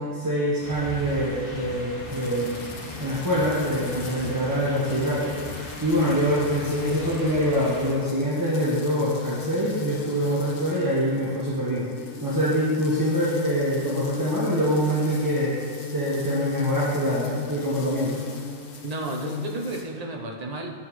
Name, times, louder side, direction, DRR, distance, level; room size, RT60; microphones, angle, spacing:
voice 1, 0.0-2.6 3.0-5.4 5.8-11.9 12.2-15.6 15.9-18.2, equal, 15° right, -8 dB, 1.1 m, -25 dB
sound 1, 0.6-7.9, left 1 dB, 20° left, 2.3 m, -39 dB
sound 2, 2.0-19.8, left 5 dB, 60° left, 1.0 m, -36 dB
voice 2, 18.8-20.7, right 2 dB, 40° right, 1 dB, 0.7 m, -32 dB
9.8 x 4.6 x 4.2 m, 2.1 s
omnidirectional pair, 1.3 m